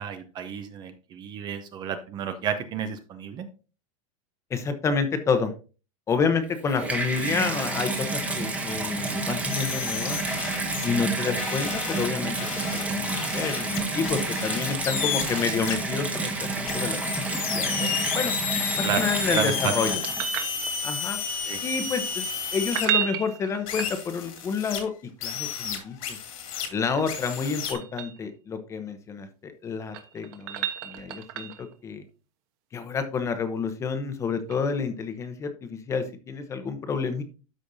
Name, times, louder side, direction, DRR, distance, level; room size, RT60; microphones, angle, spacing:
voice 1, 0.0-3.5 18.8-19.7 21.5-21.6, right 8 dB, 25° right, 9 dB, 0.6 m, -31 dB
voice 2, 4.5-5.5 6.1-10.2 10.8-12.4 12.7-17.9 18.1-18.3 18.8-20.0 20.8-21.2 21.6-22.3 22.5-24.9 25.2-26.2 26.7-32.0 32.7-37.2, left 5 dB, 15° left, 9 dB, 0.9 m, -29 dB
Water tap faucet / Bathtub (filling or washing), 6.4-20.5 21.3-21.4, right 3 dB, 10° right, 1.1 m, -30 dB
sound 1, 9.5-10.9 11.3-15.7 16.7-22.9 23.7-24.8 25.2-26.7 27.1-27.7, left 7 dB, 80° left, 2.9 m, -32 dB
sound 2, 19.9-21.1 22.6-24.4 26.6-28.2 29.6-31.7 34.5-34.6, right 11 dB, 45° right, 1.3 m, -32 dB
12.5 x 5.2 x 2.7 m, 0.34 s
supercardioid pair, 165°, 18 cm